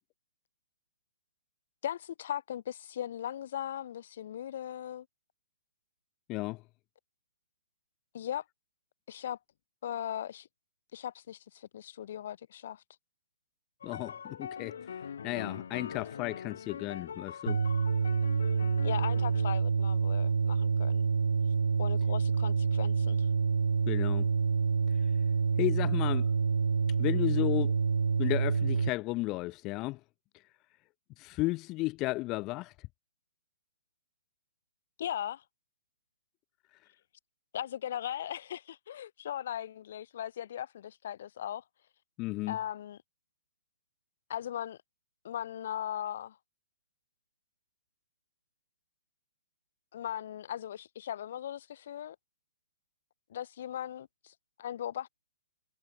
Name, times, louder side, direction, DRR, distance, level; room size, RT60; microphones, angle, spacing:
voice 1, 1.8-5.0 8.1-8.4 9.1-9.4 9.8-10.5 10.9-12.8 18.8-21.1 21.8-23.3 35.0-35.4 37.5-41.6 42.5-43.0 44.3-44.8 45.2-46.4 49.9-52.1 53.3-54.3 54.6-55.1, left 10 dB, 55° left, 1.7 m, -38 dB
voice 2, 6.3-6.6 13.8-17.6 23.9-24.3 25.6-26.3 27.0-27.7 28.2-30.0 31.2-32.7 42.2-42.6, left 21 dB, 25° left, 1.0 m, -33 dB
sound 1, 13.8-19.5, left 7 dB, 70° left, 1.4 m, -42 dB
sound 2, 17.5-28.9, right 5 dB, 90° right, 0.6 m, -27 dB
hypercardioid pair, 150°, 0 cm